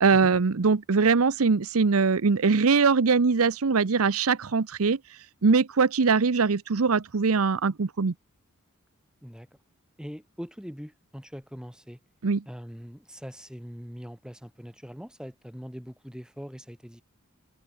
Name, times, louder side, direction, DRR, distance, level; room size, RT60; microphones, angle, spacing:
voice 1, 0.0-5.0 5.4-8.1 12.2-12.4, right 4 dB, 80° right, 0.7 m, -22 dB
voice 2, 10.0-12.0 12.5-17.0, equal, 5° right, 3.6 m, -42 dB
head